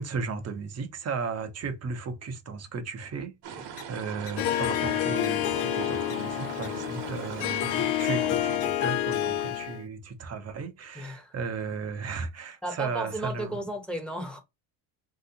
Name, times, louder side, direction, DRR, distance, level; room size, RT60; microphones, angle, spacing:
voice 1, 0.0-13.6, right 4 dB, 30° right, 0.8 m, -35 dB
sound 1, 3.4-8.6, right 7 dB, 60° right, 1.0 m, -40 dB
sound 2, 3.8-3.9 4.3-4.4 4.7-4.8 5.2-5.3 5.6-5.7 6.1-6.2 6.6-6.7 8.0-8.1 8.6-8.7, left 6 dB, 30° left, 0.6 m, -44 dB
Harp, 4.4-9.8, left 12 dB, 75° left, 0.6 m, -28 dB
voice 2, 10.9-11.3 12.6-14.4, right 1 dB, ahead, 0.9 m, -34 dB
3.1 x 2.8 x 2.6 m
supercardioid pair, 95°, 48 cm